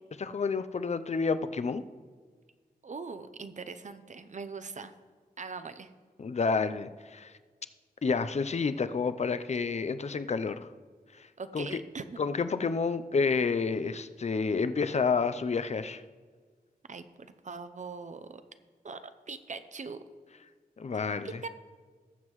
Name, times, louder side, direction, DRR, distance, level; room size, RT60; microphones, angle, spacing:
voice 1, 0.2-1.8 6.2-7.3 8.0-10.7 11.2-11.3 11.5-11.8 12.2-16.0 20.8-21.4, left 5 dB, 45° left, 12 dB, 0.5 m, -29 dB
voice 2, 2.8-4.9 5.4-5.9 11.4-12.2 16.9-18.4 18.8-19.0 19.3-20.0 20.9-21.5, right 4 dB, 50° right, 11 dB, 0.7 m, -41 dB
19.0 x 7.4 x 3.1 m, 1.5 s
wide cardioid pair, 110°, 16 cm